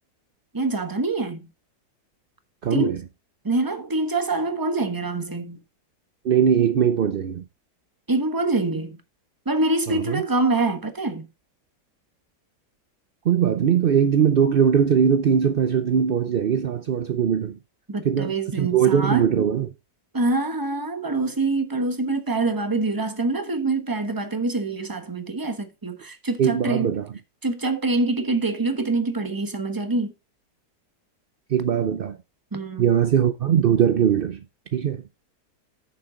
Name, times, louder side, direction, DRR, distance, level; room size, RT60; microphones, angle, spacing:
voice 1, 0.5-1.5 2.7-2.9 3.4-5.6 8.1-9.0 9.5-11.3 17.9-19.3 20.1-26.9 27.4-30.1 32.5-32.9, right 2 dB, 15° right, 1.0 m, -25 dB
voice 2, 2.6-3.0 6.2-7.5 9.9-10.2 13.2-17.6 18.0-19.7 26.4-27.1 31.5-32.2 32.8-34.4 34.7-35.0, right 8 dB, 65° right, 0.5 m, -20 dB
9.6 x 6.9 x 3.8 m
omnidirectional pair, 1.8 m